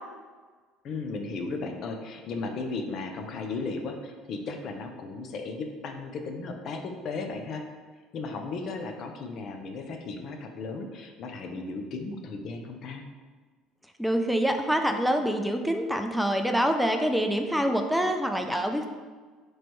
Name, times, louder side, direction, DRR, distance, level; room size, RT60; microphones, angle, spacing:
voice 1, 0.8-7.6 8.1-13.0, left 3 dB, 55° left, 5 dB, 0.5 m, -35 dB
voice 2, 14.0-18.9, equal, ahead, 5 dB, 0.4 m, -26 dB
3.1 x 3.1 x 4.3 m, 1.4 s
hypercardioid pair, 75°, 0 cm